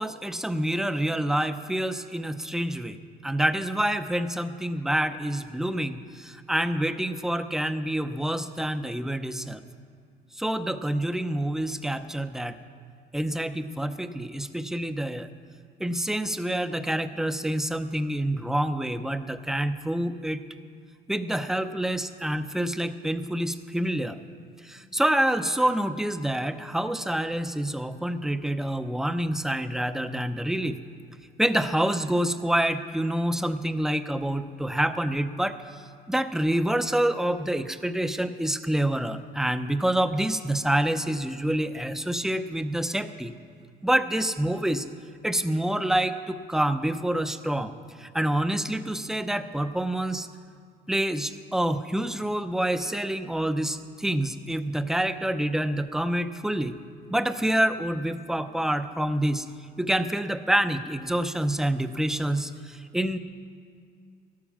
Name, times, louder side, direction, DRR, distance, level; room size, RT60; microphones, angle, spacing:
voice 1, 0.0-9.6 10.3-12.6 13.1-15.3 15.8-20.4 21.1-24.2 24.6-30.8 31.4-43.3 43.8-44.8 45.2-50.3 50.9-56.8 57.1-59.5 59.8-63.2, right 1 dB, 5° right, 10 dB, 0.6 m, -27 dB
12.0 x 12.0 x 7.4 m, 2.3 s
cardioid pair, 110°, 17 cm